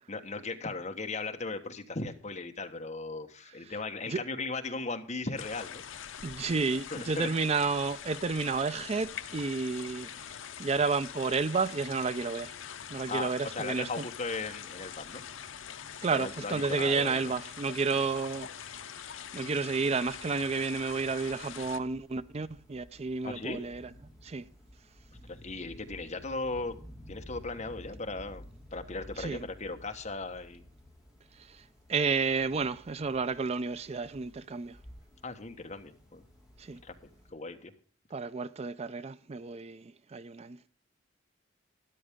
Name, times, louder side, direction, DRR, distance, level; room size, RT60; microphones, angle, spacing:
voice 1, 0.1-6.2 6.9-7.3 13.1-15.2 16.1-17.2 23.2-23.6 25.2-26.8 27.1-28.4 28.7-30.6 35.2-36.2 36.8-37.0 37.3-37.7, left 3 dB, 35° left, 1.3 m, -37 dB
sound 1, 5.4-21.8, left 8 dB, 75° left, 0.7 m, -44 dB
voice 2, 6.2-10.3 10.6-12.5 12.9-14.0 16.0-18.7 19.3-23.9 24.2-24.5 29.2-29.5 31.3-34.8 36.6-36.8 38.1-40.6, right 4 dB, 30° right, 0.4 m, -31 dB
sound 2, 20.0-37.3, equal, 5° right, 4.6 m, -53 dB
13.0 x 11.0 x 3.6 m
head